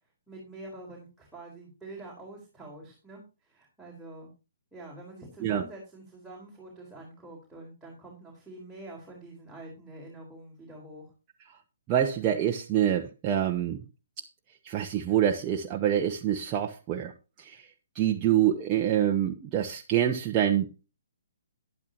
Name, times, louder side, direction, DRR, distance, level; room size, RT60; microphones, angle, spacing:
voice 1, 0.3-4.3 4.7-11.0, right 2 dB, ahead, 4.2 m, -46 dB
voice 2, 11.9-13.8 14.6-17.1 17.4-17.7 17.9-20.7, right 10 dB, 25° right, 1.0 m, -26 dB
12.0 x 11.0 x 2.9 m
figure-of-eight pair, 135°, 0 cm